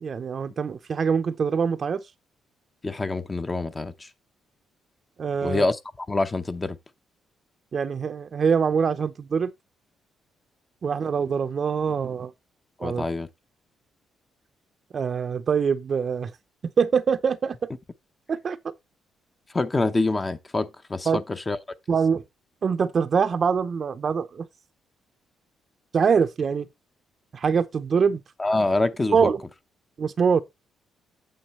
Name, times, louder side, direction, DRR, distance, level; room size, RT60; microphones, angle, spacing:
voice 1, 0.0-2.0 5.2-5.6 7.7-9.5 10.8-12.3 12.8-13.0 14.9-16.3 16.6-17.7 18.3-18.6 21.1-21.2 21.9-22.2 22.6-24.5 25.9-26.7 27.3-28.2 29.1-29.4 30.0-30.4, right 6 dB, 45° right, 0.6 m, -24 dB
voice 2, 2.8-4.1 5.4-6.8 12.8-13.3 19.5-21.6 28.4-29.3, left 2 dB, 25° left, 0.7 m, -26 dB
8.9 x 7.2 x 3.1 m
cardioid pair, 90°, 0 cm